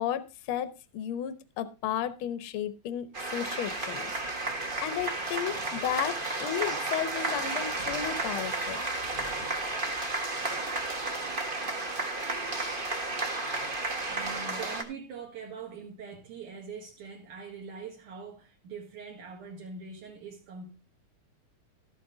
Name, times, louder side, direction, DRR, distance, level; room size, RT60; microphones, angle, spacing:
voice 1, 0.0-4.5 4.8-8.8, left 10 dB, 65° left, 1.3 m, -34 dB
sound 1, 3.1-14.8, right 2 dB, 45° right, 0.6 m, -32 dB
voice 2, 13.4-20.7, right 5 dB, 75° right, 3.2 m, -43 dB
13.0 x 8.5 x 3.9 m
omnidirectional pair, 3.7 m